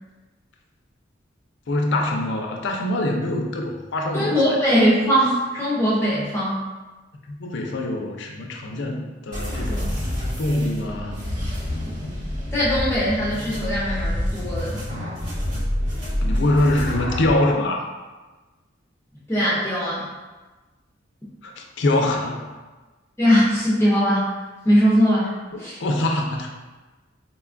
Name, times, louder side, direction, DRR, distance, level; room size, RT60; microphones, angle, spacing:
voice 1, 1.7-4.6 7.3-10.0 10.4-11.2 16.2-17.9 21.4-22.5 25.5-26.5, left 1 dB, 65° left, 1 dB, 0.4 m, -24 dB
voice 2, 4.1-6.6 12.5-14.8 19.3-20.1 23.2-24.3 24.6-25.3 25.6-25.8, equal, 15° left, -8 dB, 0.5 m, -20 dB
sound 1, 9.3-17.3, left 1 dB, 40° right, 1.0 m, -27 dB
4.1 x 2.2 x 2.4 m, 1.2 s
head